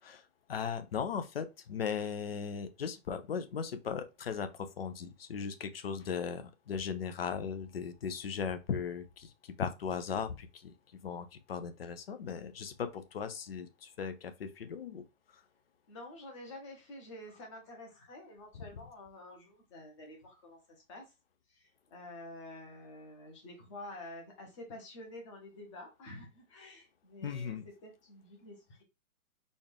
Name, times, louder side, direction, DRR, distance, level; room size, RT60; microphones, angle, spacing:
voice 1, 0.0-15.4 27.2-27.7, left 6 dB, 45° left, 0.5 m, -38 dB
voice 2, 15.9-21.1 21.5-28.8, left 1 dB, 20° left, 0.8 m, -49 dB
4.1 x 2.3 x 3.3 m
hypercardioid pair, 155°, 43 cm